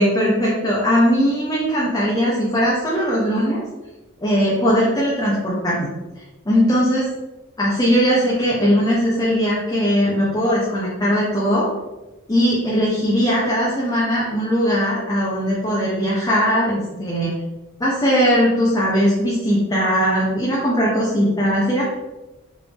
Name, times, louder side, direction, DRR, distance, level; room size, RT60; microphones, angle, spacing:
voice 1, 0.0-3.6 4.2-5.9 6.5-7.1 7.6-11.7 12.3-17.4 17.8-21.8, equal, 15° left, -7 dB, 0.6 m, -19 dB
3.4 x 2.6 x 3.3 m, 1.1 s
head